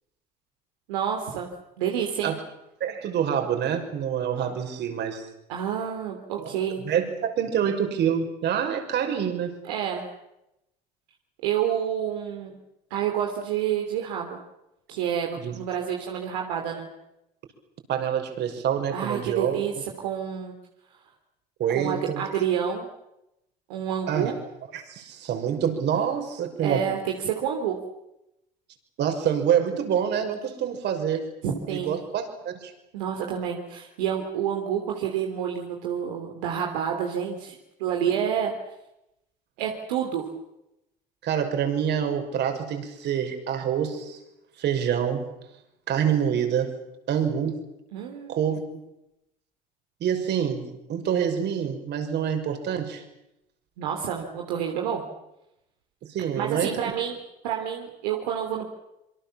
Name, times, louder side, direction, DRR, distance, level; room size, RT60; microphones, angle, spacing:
voice 1, 0.9-1.5 1.8-2.4 5.5-6.8 9.6-10.0 11.4-12.5 12.9-14.4 14.9-16.9 18.9-20.5 21.7-22.9 23.7-24.3 26.6-27.8 31.4-32.0 32.9-38.5 39.6-40.2 47.9-48.3 53.8-55.0 56.4-57.2 57.4-58.6, right 9 dB, 80° right, 1 dB, 3.2 m, -28 dB
voice 2, 2.8-5.3 6.4-6.5 6.8-9.5 15.4-15.6 17.9-19.6 21.6-22.2 24.1-24.3 24.7-26.8 29.0-31.3 31.7-32.7 38.0-38.4 41.2-44.2 44.6-45.3 45.9-46.8 47.1-47.6 48.3-48.8 50.0-53.0 56.1-56.9, right 8 dB, 55° right, 5 dB, 5.9 m, -26 dB
27.0 x 24.0 x 7.4 m, 0.88 s
hypercardioid pair, 70°, 20 cm